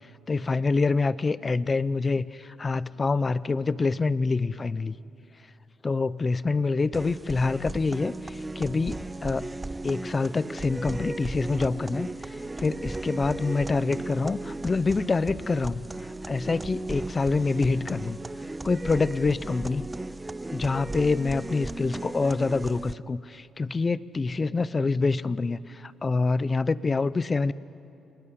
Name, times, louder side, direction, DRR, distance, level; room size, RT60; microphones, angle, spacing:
voice 1, 0.3-5.0 5.8-9.5 9.8-15.9 16.3-18.2 18.6-19.9 20.5-27.5, left 4 dB, 30° left, 17 dB, 0.7 m, -26 dB
sound 1, 6.9-22.9, right 2 dB, 15° right, 0.6 m, -36 dB
29.0 x 20.0 x 9.5 m, 2.7 s
cardioid pair, 90°, 0 cm